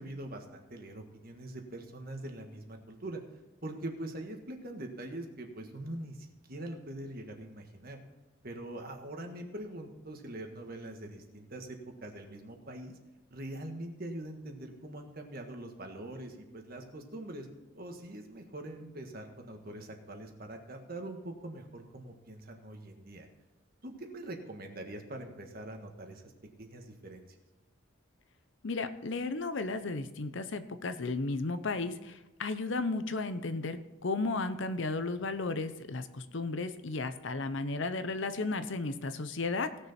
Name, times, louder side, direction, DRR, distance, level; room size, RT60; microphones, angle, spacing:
voice 1, 0.0-3.2 3.6-8.0 8.4-13.0 13.3-17.5 17.7-23.3 23.8-26.3 26.6-27.2, right 1 dB, 45° right, 4 dB, 1.6 m, -43 dB
voice 2, 28.6-39.7, left 3 dB, 65° left, 11 dB, 0.7 m, -34 dB
17.5 x 6.7 x 4.3 m, 1.0 s
head